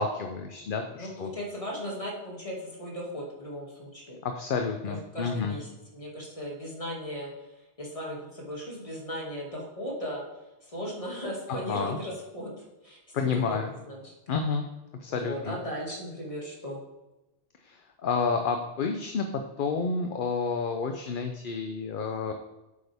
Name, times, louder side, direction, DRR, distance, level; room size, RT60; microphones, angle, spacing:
voice 1, 0.0-1.3 4.2-5.6 11.5-12.0 13.1-13.7 14.3-14.6 15.0-15.6 17.6-22.3, left 5 dB, 55° left, 5 dB, 0.8 m, -30 dB
voice 2, 1.0-4.2 4.9-7.3 7.8-10.2 10.7-12.5 12.8-13.4 13.7-14.1 15.1-16.8, equal, 30° left, -3 dB, 2.3 m, -37 dB
8.6 x 8.2 x 3.5 m, 1.0 s
omnidirectional pair, 1.1 m